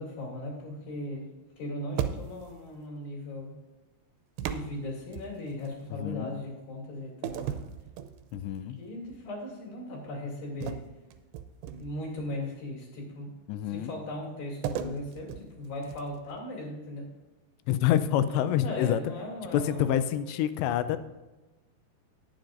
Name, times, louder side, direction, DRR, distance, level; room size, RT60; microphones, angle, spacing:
voice 1, 0.0-3.6 4.4-7.6 8.8-10.8 11.8-13.3 13.7-17.0 18.3-20.1, left 1 dB, 60° left, -3 dB, 4.3 m, -38 dB
sound 1, 2.0-2.6 4.4-5.7 7.2-8.6 9.0-9.3 10.6-12.1 14.6-16.3, right 9 dB, 90° right, 2.8 m, -36 dB
voice 2, 5.9-6.4 8.3-8.8 13.5-13.9 17.7-19.1 19.5-21.0, left 11 dB, 85° left, 12 dB, 2.8 m, -27 dB
19.5 x 7.4 x 2.6 m, 1.1 s
omnidirectional pair, 5.0 m